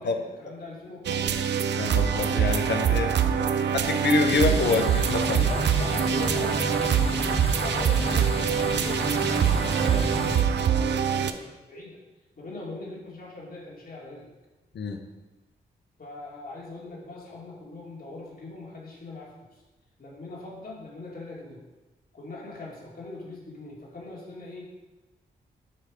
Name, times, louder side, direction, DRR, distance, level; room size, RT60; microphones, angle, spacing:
voice 1, 0.0-1.5 3.1-3.7 5.3-12.0 12.4-14.3 16.0-19.3 20.0-21.6 22.1-24.7, left 2 dB, 50° left, -4 dB, 2.7 m, -41 dB
sound 1, 1.0-11.3, right 8 dB, 70° right, 0.5 m, -24 dB
voice 2, 1.8-3.1 3.9-5.4 14.7-15.0, left 4 dB, 70° left, 6 dB, 0.8 m, -26 dB
sound 2, 4.3-10.4, left 1 dB, 30° left, 1.1 m, -31 dB
9.7 x 3.3 x 5.0 m, 1.1 s
supercardioid pair, 40°, 19 cm